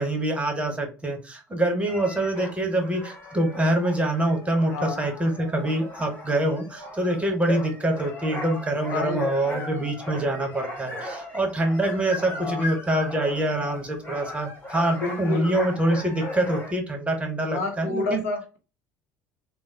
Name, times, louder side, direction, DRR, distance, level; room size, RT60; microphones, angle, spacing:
voice 1, 0.0-18.2, right 1 dB, 15° right, 0.9 m, -25 dB
sound 1, 1.9-16.7, left 1 dB, 20° left, 1.5 m, -37 dB
voice 2, 4.7-5.0 6.4-6.6 8.9-9.5 12.3-12.7 15.0-15.5 17.5-18.6, left 3 dB, 75° left, 0.6 m, -30 dB
3.1 x 2.0 x 2.7 m
figure-of-eight pair, 60°, 9 cm